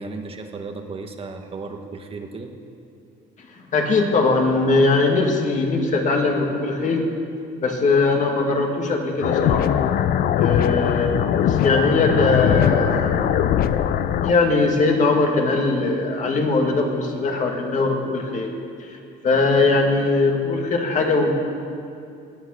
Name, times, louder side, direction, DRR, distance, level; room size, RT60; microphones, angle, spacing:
voice 1, 0.0-2.5 10.6-10.8, right 3 dB, 35° right, 4 dB, 1.3 m, -35 dB
voice 2, 3.7-7.1 7.6-9.7 10.3-11.1 11.4-13.1 14.2-18.5 18.8-19.0 19.2-21.3, left 3 dB, 45° left, 2 dB, 2.1 m, -20 dB
sound 1, 9.2-14.3, left 10 dB, 65° left, 0.6 m, -20 dB
17.5 x 9.3 x 6.5 m, 2.6 s
cardioid pair, 110°, 17 cm